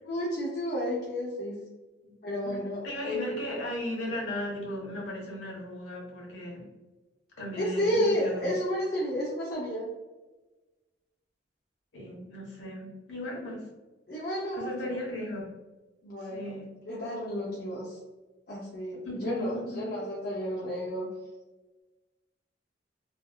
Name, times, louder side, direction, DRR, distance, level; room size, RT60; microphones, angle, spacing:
voice 1, 0.0-1.6 2.2-3.3 7.6-9.9 14.1-15.0 16.0-16.6 16.9-18.0 18.5-21.2, equal, 55° left, -5 dB, 0.6 m, -31 dB
voice 2, 2.8-6.7 7.4-8.5 11.9-13.7 14.5-15.5 16.3-16.7 19.0-19.9, left 1 dB, 80° left, -3 dB, 1.1 m, -36 dB
3.2 x 2.4 x 2.3 m, 1.2 s
head